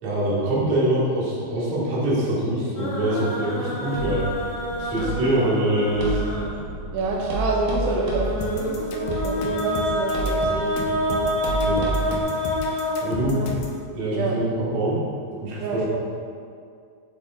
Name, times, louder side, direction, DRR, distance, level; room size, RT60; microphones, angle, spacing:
voice 1, 0.0-4.2 4.8-6.2 11.5-11.9 12.3-12.7 13.0-13.4 13.9-15.0 15.4-15.8, right 1 dB, 50° right, -9 dB, 2.7 m, -24 dB
sound 1, 2.8-6.8 7.9-13.7, equal, 60° left, 1.4 m, -28 dB
sound 2, 3.9-12.2, right 2 dB, 65° right, 2.2 m, -32 dB
voice 2, 6.9-11.3 13.2-13.5 14.1-14.4 15.6-16.0, right 2 dB, 85° right, -2 dB, 2.7 m, -27 dB
sound 3, 8.4-13.8, left 2 dB, 80° left, 1.9 m, -33 dB
8.7 x 7.2 x 2.4 m, 2.3 s
omnidirectional pair, 4.8 m